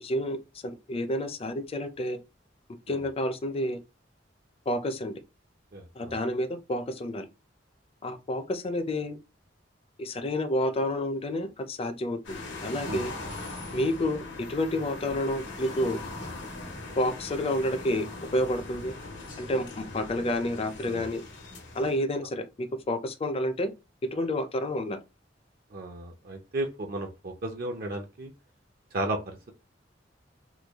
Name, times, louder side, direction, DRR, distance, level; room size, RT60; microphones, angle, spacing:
voice 1, 0.0-2.2 2.9-3.8 4.7-5.2 6.0-7.3 8.0-9.2 10.0-13.1 13.7-14.2 14.5-16.0 17.0-18.1 18.3-18.9 19.4-21.2 21.7-23.7 24.1-25.0, left 1 dB, 30° left, 0.5 m, -29 dB
voice 2, 5.7-6.1 12.9-13.1 20.8-21.1 25.7-28.3 28.9-29.5, right 2 dB, 55° right, 0.6 m, -34 dB
sound 1, 12.2-22.0, left 2 dB, 85° left, 1.2 m, -40 dB
3.1 x 2.3 x 3.4 m
head